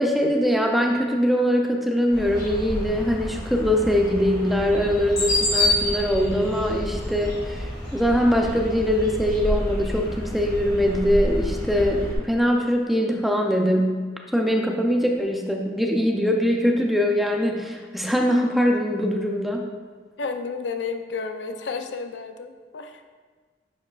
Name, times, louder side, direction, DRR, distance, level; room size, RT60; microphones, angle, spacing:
voice 1, 0.0-14.0 14.3-19.6, equal, ahead, 1 dB, 0.5 m, -22 dB
sound 1, 2.1-12.1, left 1 dB, 20° left, 1.8 m, -28 dB
voice 2, 20.2-23.0, left 4 dB, 85° left, 6 dB, 0.5 m, -31 dB
10.5 x 4.8 x 2.4 m, 1.5 s
head